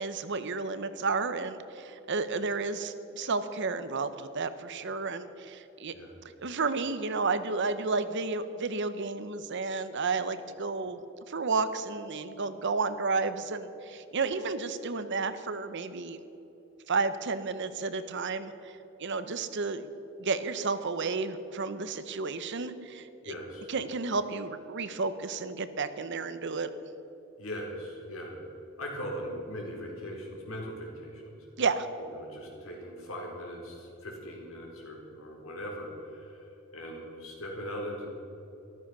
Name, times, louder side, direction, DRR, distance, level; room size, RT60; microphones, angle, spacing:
voice 1, 0.0-5.9 6.4-11.0 11.3-16.2 16.9-18.7 19.0-19.9 20.2-23.3 23.7-26.7 31.6-31.9, right 4 dB, 60° right, 12 dB, 0.9 m, -32 dB
voice 2, 23.2-23.7 27.4-28.4 28.8-31.4 32.0-38.1, equal, 80° left, 0 dB, 4.0 m, -40 dB
14.0 x 13.0 x 6.2 m, 3.0 s
head